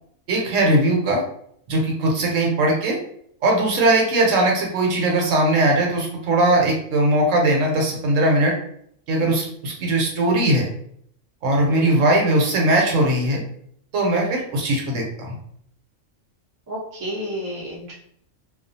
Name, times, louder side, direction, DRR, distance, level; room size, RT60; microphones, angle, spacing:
voice 1, 0.3-1.2 1.7-3.0 3.4-8.5 9.1-10.7 11.4-13.4 13.9-15.4, right 1 dB, 75° right, 0 dB, 1.1 m, -19 dB
voice 2, 11.6-11.9 16.7-18.0, equal, 20° right, -5 dB, 0.5 m, -31 dB
2.4 x 2.3 x 2.6 m, 0.66 s
omnidirectional pair, 1.4 m